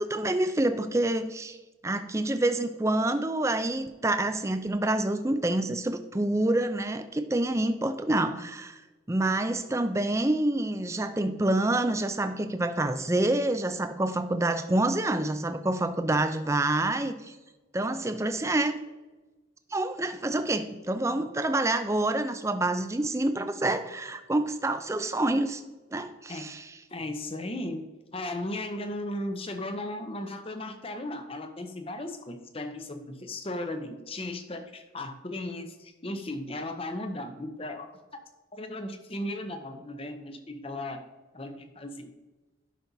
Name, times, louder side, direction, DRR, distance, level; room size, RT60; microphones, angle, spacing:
voice 1, 0.0-1.6 1.8-8.8 9.1-17.4 17.7-18.8 19.7-25.6 25.9-26.7, right 2 dB, 15° right, 9 dB, 0.4 m, -27 dB
voice 2, 26.9-37.9 38.5-41.0 41.3-42.1, left 1 dB, 30° left, 7 dB, 0.7 m, -36 dB
11.5 x 5.9 x 2.7 m, 1.2 s
head